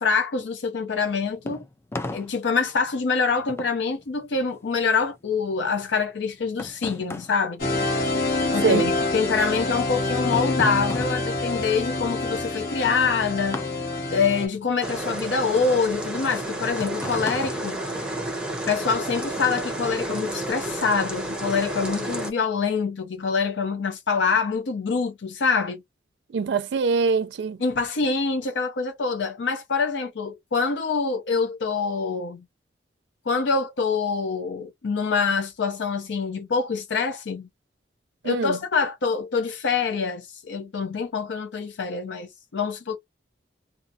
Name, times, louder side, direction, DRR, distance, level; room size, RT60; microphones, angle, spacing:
voice 1, 0.0-1.6 2.1-7.6 8.5-13.7 14.1-17.8 18.7-25.8 27.6-32.4 33.2-37.5 38.2-43.0, left 5 dB, 85° left, 0.5 m, -25 dB
sound 1, 1.0-8.6 8.9-18.6, left 2 dB, 15° left, 0.4 m, -38 dB
sound 2, 7.6-14.5, left 2 dB, 55° left, 1.1 m, -26 dB
voice 2, 8.6-9.0 26.3-27.6 38.2-38.6, right 5 dB, 70° right, 0.4 m, -23 dB
sound 3, 14.8-22.3, right 1 dB, 5° right, 0.8 m, -31 dB
2.6 x 2.4 x 2.5 m
head